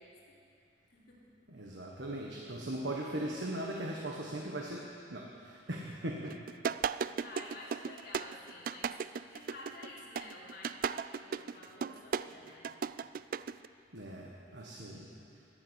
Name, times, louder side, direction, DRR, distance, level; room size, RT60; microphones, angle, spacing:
voice 1, 0.0-1.7 6.7-9.0 9.3-12.9 14.5-15.5, left 1 dB, 55° left, -7 dB, 3.3 m, -52 dB
voice 2, 1.5-6.4 13.9-15.1, right 1 dB, 75° right, -1 dB, 1.5 m, -39 dB
sound 1, 6.3-13.7, right 6 dB, 50° right, 0.3 m, -36 dB
15.5 x 11.5 x 8.2 m, 2.5 s
head